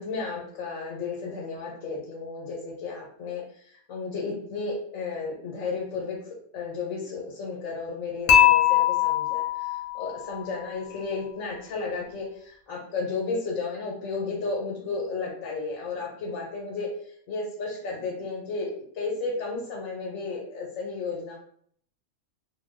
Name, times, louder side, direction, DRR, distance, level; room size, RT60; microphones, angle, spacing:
voice 1, 0.0-16.9 17.3-21.4, left 4 dB, 90° left, -3 dB, 1.2 m, -33 dB
Dishes pots and pans / Chink clink, 8.3-10.4, left 12 dB, 70° left, 0.9 m, -21 dB
2.6 x 2.2 x 3.4 m, 0.63 s
omnidirectional pair, 1.4 m